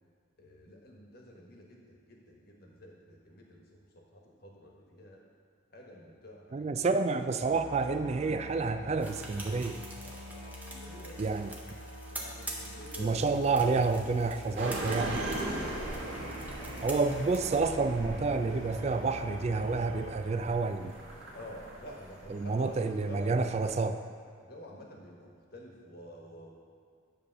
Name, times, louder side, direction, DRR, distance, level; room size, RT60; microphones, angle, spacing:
voice 1, 0.4-5.2 5.7-7.0 10.0-11.5 12.1-13.3 14.1-15.1 15.4-16.5 21.3-23.7 24.4-26.5, equal, 50° left, -1 dB, 1.3 m, -49 dB
voice 2, 6.5-9.8 11.2-11.5 13.0-15.2 16.8-20.9 22.3-24.0, right 4 dB, 35° right, 9 dB, 0.3 m, -29 dB
Musical instrument, 7.4-20.1, left 1 dB, 70° left, 1.1 m, -46 dB
sound 1, 9.0-17.6, right 1 dB, 10° right, 0.8 m, -46 dB
sound 2, 14.6-23.8, right 1 dB, 75° right, 1.6 m, -40 dB
9.7 x 3.4 x 6.6 m, 2.2 s
head